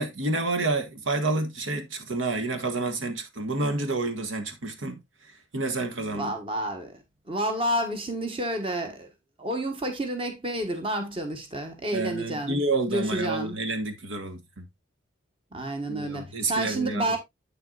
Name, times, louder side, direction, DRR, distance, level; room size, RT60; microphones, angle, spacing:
voice 1, 0.0-6.3 11.9-14.7 15.9-17.1, right 2 dB, 80° right, 1.4 m, -29 dB
voice 2, 6.1-7.0 7.3-9.1 9.4-13.6 15.5-17.2, right 1 dB, 25° right, 1.4 m, -30 dB
8.4 x 7.3 x 2.4 m
head